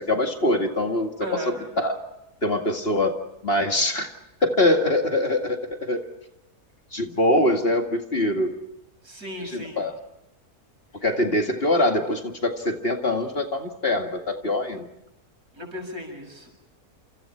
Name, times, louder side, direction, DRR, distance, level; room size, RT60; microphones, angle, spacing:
voice 1, 0.0-2.0 2.4-3.2 3.4-4.1 4.4-6.0 6.9-8.6 9.5-9.9 11.0-14.9, left 1 dB, 40° left, 4 dB, 2.3 m, -23 dB
voice 2, 1.2-1.7 9.0-9.9 15.5-16.5, equal, 75° right, 3 dB, 7.3 m, -35 dB
29.5 x 28.5 x 4.5 m, 0.87 s
omnidirectional pair, 1.6 m